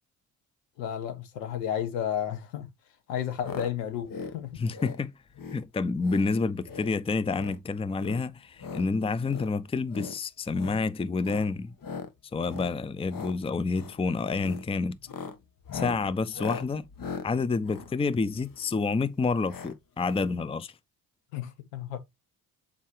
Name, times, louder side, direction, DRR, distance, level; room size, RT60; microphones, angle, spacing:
voice 1, 0.8-2.7 3.1-4.6 21.3-22.0, left 9 dB, 75° left, 1.6 m, -32 dB
sound 1, 3.4-3.7 4.0-4.4 4.7-5.0 5.3-5.6 6.0-6.3 6.6-6.9 7.2-7.6 7.9-8.9 9.2-9.5 9.9-10.2 10.5-10.8 11.2-11.5 11.8-12.1 12.4-12.7 13.0-13.4 13.7-14.0 14.4-14.6 15.0-18.7 19.5-19.7 20.0-20.1 20.3-20.4, left 5 dB, 45° left, 1.6 m, -39 dB
voice 2, 4.6-5.1 5.5-11.7 12.3-15.0 15.7-16.8 17.2-20.7, left 4 dB, 10° left, 0.6 m, -29 dB
7.3 x 4.8 x 3.3 m
hypercardioid pair, 55°, 47 cm